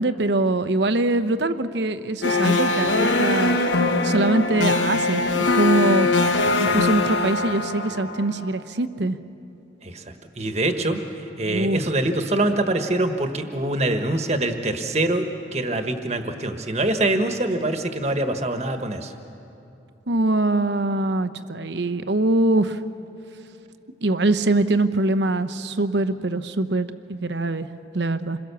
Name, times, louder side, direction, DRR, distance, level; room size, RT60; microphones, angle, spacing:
voice 1, 0.0-3.6 4.0-6.1 6.6-9.2 11.5-11.8 20.1-22.8 24.0-27.7 27.9-28.4, right 2 dB, 70° right, 11 dB, 0.9 m, -23 dB
sound 1, 2.2-8.5, left 3 dB, 80° left, 1.2 m, -22 dB
voice 2, 10.4-11.0 11.4-15.3 15.5-19.1, right 2 dB, 35° right, 6 dB, 1.4 m, -24 dB
27.5 x 22.0 x 7.0 m, 2.8 s
head